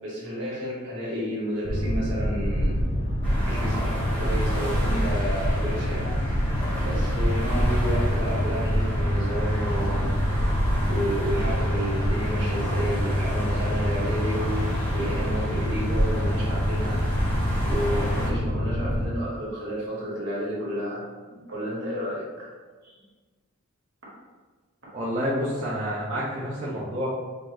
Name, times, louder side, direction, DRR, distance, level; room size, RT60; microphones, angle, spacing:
voice 1, 0.0-2.8 3.4-6.5 6.8-10.4 10.9-14.5 14.9-17.0 17.6-22.5 22.8-22.9, equal, 60° right, -6 dB, 1.4 m, -31 dB
Boat Water vehicle, 1.6-19.1, equal, 50° left, 0.7 m, -26 dB
sound 1, 3.2-18.3, equal, 5° left, 1.0 m, -31 dB
voice 2, 24.9-27.1, equal, 30° right, -9 dB, 0.6 m, -28 dB
5.2 x 2.0 x 3.2 m, 1.3 s
head